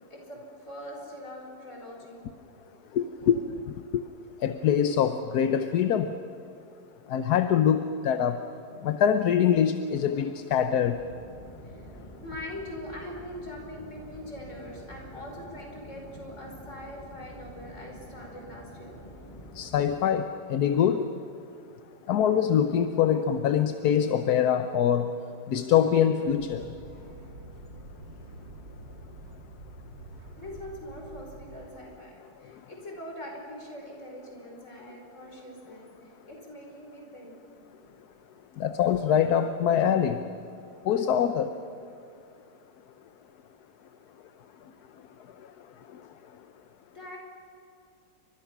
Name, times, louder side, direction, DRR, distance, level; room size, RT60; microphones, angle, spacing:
voice 1, 0.1-2.3 11.4-11.9 12.2-19.0 26.8-27.1 30.4-37.4 37.8-37.9 38.6-38.7 46.9-47.2, left 1 dB, 40° left, 0 dB, 5.7 m, -43 dB
voice 2, 2.9-3.4 3.6-4.0 4.4-6.1 7.1-8.4 8.8-11.0 19.6-21.1 22.1-25.1 25.5-26.7 38.6-40.2 40.9-41.5, left 8 dB, 65° left, 9 dB, 1.2 m, -24 dB
sound 1, 10.8-20.0, equal, 15° left, 3.9 m, -47 dB
sound 2, 26.3-31.6, right 2 dB, 90° right, 3.1 m, -46 dB
29.5 x 25.5 x 6.1 m, 2.7 s
omnidirectional pair, 2.0 m